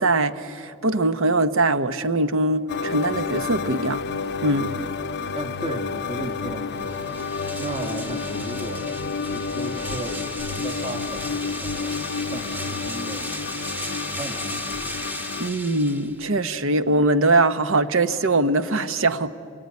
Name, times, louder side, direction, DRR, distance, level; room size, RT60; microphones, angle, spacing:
voice 1, 0.0-4.0 4.4-4.8 15.4-19.3, right 2 dB, 65° right, 12 dB, 1.0 m, -22 dB
sound 1, 2.7-15.5, left 5 dB, 50° left, 0.6 m, -30 dB
voice 2, 5.3-8.9 9.2-13.4 13.7-14.9, right 1 dB, 25° right, 3 dB, 1.3 m, -36 dB
sound 2, 6.7-16.4, equal, 10° right, 1.2 m, -35 dB
27.0 x 23.0 x 9.6 m, 2.4 s
head